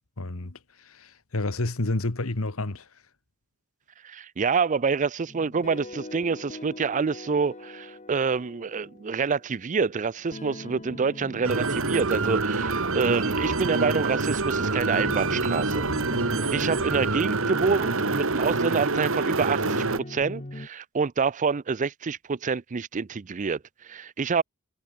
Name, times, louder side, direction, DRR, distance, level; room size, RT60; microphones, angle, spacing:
voice 1, 0.2-2.9 13.7-13.8, left 2 dB, 70° left, 1.6 m, -30 dB
voice 2, 4.0-15.9 16.5-24.4, right 5 dB, 35° right, 0.5 m, -27 dB
sound 1, 5.3-20.7, left 1 dB, 35° left, 1.7 m, -42 dB
sound 2, 11.4-20.0, right 3 dB, 65° right, 2.2 m, -26 dB
head